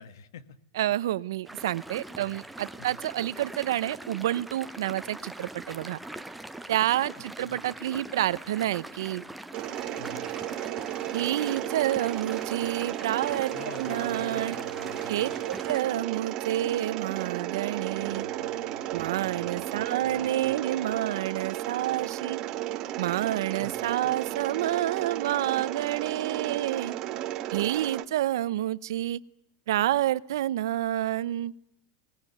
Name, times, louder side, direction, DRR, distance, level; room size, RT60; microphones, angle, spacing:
voice 1, 0.0-0.6 2.2-2.3 2.8-2.9 7.4-7.6 10.0-10.3 13.5-15.3 17.9-18.9 19.3-19.6 20.0-20.3 23.6-23.7, left 7 dB, 75° left, 14 dB, 1.9 m, -46 dB
voice 2, 0.7-6.0 6.7-9.2 11.1-14.6 15.1-18.3 18.9-22.4 23.0-26.9 27.5-29.2 29.7-31.5, right 13 dB, 80° right, 18 dB, 0.9 m, -29 dB
sound 1, 1.5-15.8, right 1 dB, 5° right, 0.9 m, -43 dB
Mechanisms, 9.5-28.0, right 13 dB, 35° right, 1.7 m, -34 dB
21.5 x 19.5 x 9.5 m, 0.77 s
supercardioid pair, 155°, 2 cm